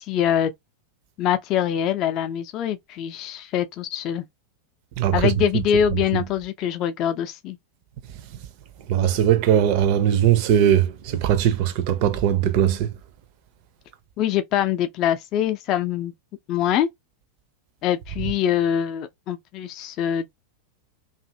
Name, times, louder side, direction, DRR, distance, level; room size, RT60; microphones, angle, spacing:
voice 1, 0.1-0.5 1.2-4.2 5.1-7.6 14.2-16.1 16.5-16.9 17.8-20.3, left 10 dB, 35° left, 0.4 m, -24 dB
voice 2, 5.0-5.3 6.1-6.2 8.9-12.9, right 10 dB, 45° right, 0.5 m, -20 dB
2.6 x 2.4 x 2.7 m
figure-of-eight pair, 90°, 0 cm